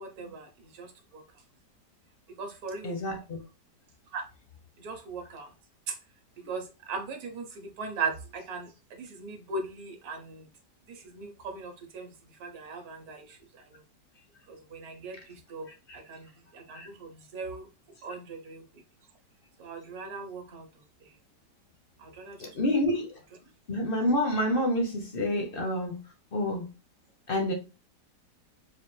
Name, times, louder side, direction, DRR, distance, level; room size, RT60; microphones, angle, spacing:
voice 1, 0.0-1.4 2.3-3.0 4.1-4.2 4.8-5.5 5.9-6.0 6.4-10.5 10.9-13.8 14.5-17.7 18.0-18.8 19.6-21.2 22.0-22.8, right 4 dB, 65° right, 1.2 m, -39 dB
voice 2, 2.8-3.4 16.7-16.9 22.4-23.1 23.7-26.0 26.3-26.7 27.3-27.5, left 1 dB, 55° left, 0.6 m, -28 dB
4.2 x 2.5 x 3.1 m
omnidirectional pair, 1.9 m